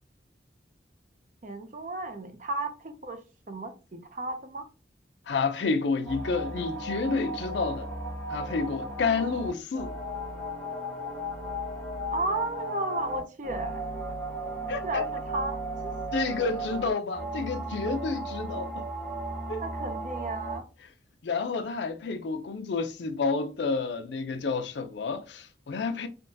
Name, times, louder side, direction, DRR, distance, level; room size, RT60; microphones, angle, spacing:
voice 1, 1.4-3.2 3.5-4.7 12.1-13.8 14.8-15.9 19.6-20.6, right 2 dB, 45° right, 0.5 m, -33 dB
voice 2, 5.3-7.9 8.3-9.9 14.7-15.1 16.1-18.9 19.5-19.6 21.2-26.1, left 4 dB, 80° left, 0.5 m, -30 dB
sound 1, 6.0-20.6, right 1 dB, 5° left, 0.7 m, -35 dB
3.5 x 2.2 x 2.6 m
head